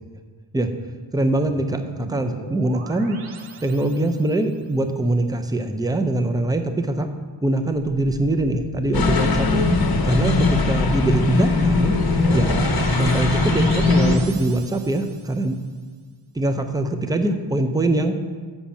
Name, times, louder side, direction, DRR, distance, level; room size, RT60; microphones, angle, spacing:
voice 1, 1.1-3.2 3.6-7.1 7.4-9.7 10.0-12.0 12.3-12.7 13.0-15.5 16.3-18.2, right 2 dB, 10° right, 7 dB, 0.5 m, -23 dB
sound 1, 1.3-4.4 7.7-15.4, right 5 dB, 90° right, 0.8 m, -37 dB
sound 2, 8.9-14.2, left 3 dB, 50° left, 0.9 m, -20 dB
7.2 x 5.2 x 7.1 m, 1.5 s
wide cardioid pair, 120°, 49 cm